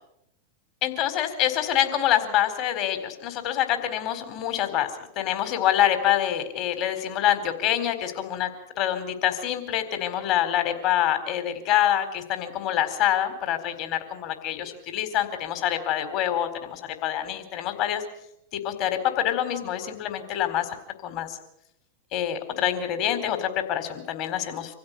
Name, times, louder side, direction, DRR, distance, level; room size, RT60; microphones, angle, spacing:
voice 1, 0.8-4.9 5.2-8.5 8.8-18.0 18.5-20.7 21.0-21.4 22.1-24.8, left 11 dB, 50° left, 9 dB, 4.3 m, -26 dB
26.0 x 16.0 x 8.4 m, 0.78 s
hypercardioid pair, 100°, 0 cm